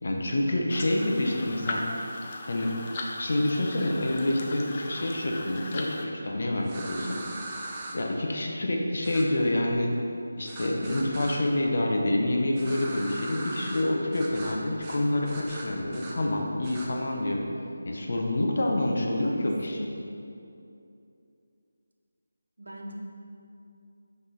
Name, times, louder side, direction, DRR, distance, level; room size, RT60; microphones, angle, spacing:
voice 1, 0.0-1.8 2.5-2.7 3.2-7.2 7.9-9.9 10.3-17.4 17.8-19.8, left 1 dB, 55° left, 0 dB, 1.0 m, -27 dB
sound 1, 0.7-6.1, left 2 dB, 30° left, 0.7 m, -38 dB
sound 2, 6.6-7.9 9.0-9.2 10.5-11.4 12.5-13.8 14.1-14.5 14.8-15.0 15.2-16.1 16.6-16.9, right 2 dB, 20° right, 0.8 m, -40 dB
voice 2, 19.2-20.1 22.6-22.9, right 1 dB, 70° right, 0 dB, 1.1 m, -39 dB
7.5 x 5.3 x 4.0 m, 2.6 s
figure-of-eight pair, 160°, 0 cm